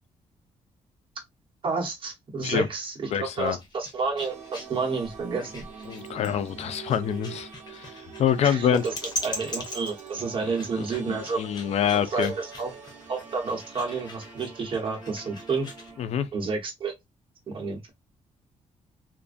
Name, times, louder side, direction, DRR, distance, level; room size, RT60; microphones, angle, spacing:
voice 1, 1.6-5.6 8.4-8.9 9.2-11.4 12.1-12.7 13.1-15.7 16.3-16.9 17.5-17.9, right 4 dB, 45° right, 0.9 m, -30 dB
voice 2, 3.1-3.6 5.9-7.9 8.2-8.8 10.8-12.3 16.0-16.3, left 9 dB, 60° left, 0.4 m, -26 dB
sound 1, 3.2-15.9, left 1 dB, 35° left, 0.8 m, -41 dB
sound 2, 4.3-16.1, right 6 dB, 85° right, 0.7 m, -45 dB
2.4 x 2.2 x 2.3 m
cardioid pair, 125°, 12 cm